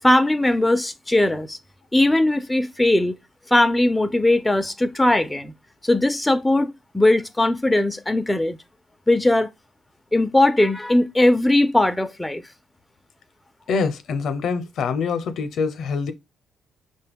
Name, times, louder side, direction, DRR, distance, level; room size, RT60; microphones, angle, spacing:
voice 1, 0.0-1.6 1.9-3.2 3.5-5.5 5.8-8.6 9.1-9.5 10.1-12.4, left 1 dB, 10° left, 0.4 m, -19 dB
voice 2, 13.7-16.1, left 5 dB, 70° left, 0.6 m, -25 dB
5.2 x 2.2 x 3.4 m
cardioid pair, 90°, 0 cm